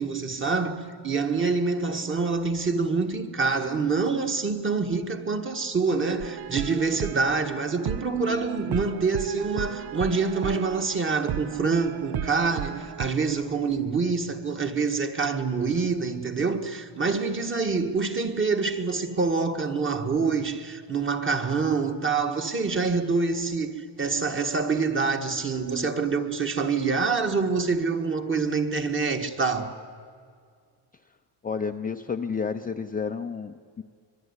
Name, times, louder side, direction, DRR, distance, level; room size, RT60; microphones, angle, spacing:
voice 1, 0.0-29.8, right 4 dB, 25° right, 1.6 m, -26 dB
sound 1, 6.2-13.1, right 10 dB, 55° right, 0.7 m, -35 dB
voice 2, 31.4-33.8, left 5 dB, 20° left, 0.6 m, -31 dB
25.5 x 22.5 x 9.7 m
cardioid pair, 150°, 47 cm